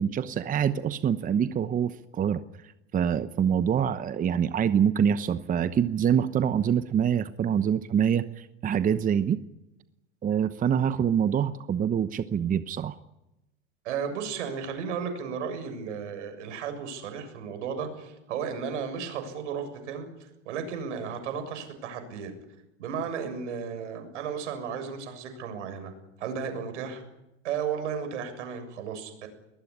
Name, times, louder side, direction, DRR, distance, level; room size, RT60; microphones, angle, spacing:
voice 1, 0.0-2.4 2.9-9.4 10.2-13.0, right 8 dB, 20° right, 12 dB, 1.0 m, -25 dB
voice 2, 13.8-22.3 22.8-25.9 26.2-27.0 27.4-29.3, right 6 dB, 75° right, 8 dB, 7.2 m, -34 dB
22.0 x 20.0 x 9.9 m, 0.92 s
hypercardioid pair, 105°, 36 cm